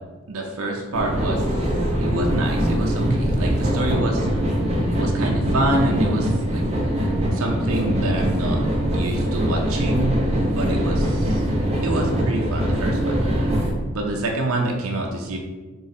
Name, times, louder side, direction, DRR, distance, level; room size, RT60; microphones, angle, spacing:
voice 1, 0.3-4.3 5.0-6.6 7.3-8.6 8.9-10.2 10.5-11.4 11.8-13.6 13.9-15.4, right 2 dB, 75° right, 0 dB, 0.6 m, -27 dB
sound 1, 0.9-13.7, equal, 30° right, 0.8 m, -22 dB
3.9 x 3.1 x 4.1 m, 1.3 s
head